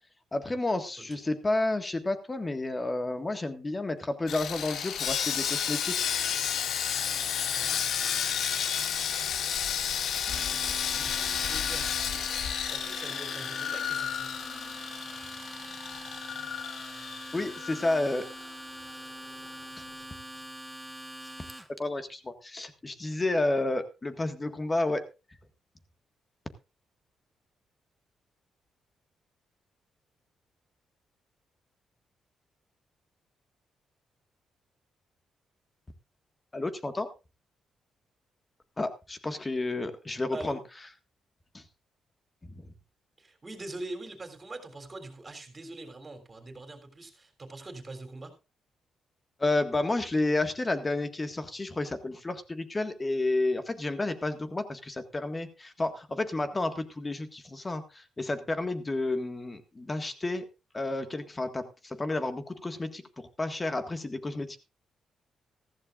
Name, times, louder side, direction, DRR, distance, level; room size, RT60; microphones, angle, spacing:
voice 1, 0.3-6.1 17.3-18.3 19.8-19.9 21.8-25.1 36.5-37.1 38.8-40.6 41.5-41.6 42.4-42.6 49.4-60.5 60.7-64.6, left 2 dB, 25° left, 8 dB, 1.7 m, -31 dB
Sawing, 4.3-18.5 18.8-19.0 19.4-19.5, left 8 dB, 70° left, 0.9 m, -32 dB
Domestic sounds home sounds, 10.2-21.8, right 1 dB, ahead, 1.4 m, -43 dB
voice 2, 11.0-12.4 12.7-14.3 40.3-40.6 43.2-48.3, right 2 dB, 30° right, 5 dB, 3.5 m, -43 dB
15.0 x 14.5 x 2.5 m, 0.29 s
cardioid pair, 75°, 0 cm